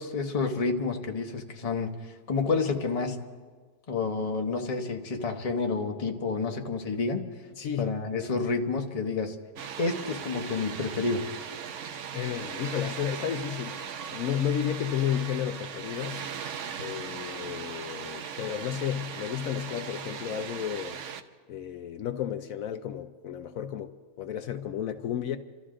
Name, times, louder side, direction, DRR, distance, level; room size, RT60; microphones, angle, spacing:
voice 1, 0.0-3.3 3.9-7.3 7.8-9.3 9.8-11.2, left 4 dB, 30° left, 0.9 m, -29 dB
voice 2, 7.6-7.9 12.1-13.8 14.1-16.2 16.8-21.0 21.5-25.4, left 10 dB, 70° left, 1.0 m, -32 dB
Water, 9.6-21.2, right 7 dB, 60° right, 1.0 m, -38 dB
27.5 x 13.5 x 3.8 m
omnidirectional pair, 1.6 m